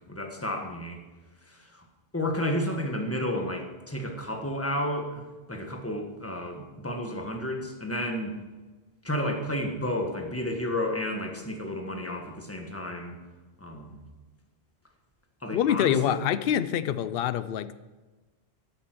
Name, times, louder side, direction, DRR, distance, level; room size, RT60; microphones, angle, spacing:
voice 1, 0.1-1.0 1.5-1.8 2.1-8.3 9.0-13.2 13.6-14.0 15.4-16.2, left 1 dB, 15° left, 1.5 m, -32 dB
voice 2, 15.5-17.7, left 10 dB, 70° left, 0.8 m, -26 dB
13.0 x 8.8 x 6.1 m
omnidirectional pair, 1.1 m